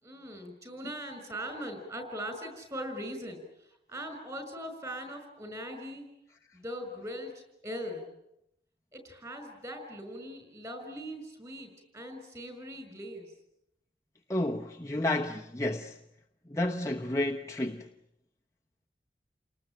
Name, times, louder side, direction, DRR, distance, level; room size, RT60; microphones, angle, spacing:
voice 1, 0.0-6.1 6.5-8.2 8.9-13.3, equal, 20° right, 5.8 m, -40 dB
voice 2, 14.3-16.0 16.5-17.9, left 1 dB, 15° left, 0.9 m, -31 dB
29.5 x 19.5 x 9.0 m
head